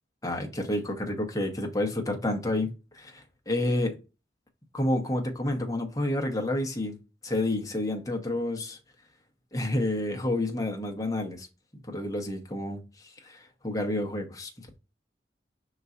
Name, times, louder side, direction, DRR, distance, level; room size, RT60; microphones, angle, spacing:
voice 1, 0.2-4.0 4.7-7.0 7.2-8.8 9.5-11.5 11.7-14.5, left 1 dB, 20° left, 0.9 m, -29 dB
5.3 x 4.0 x 2.4 m
head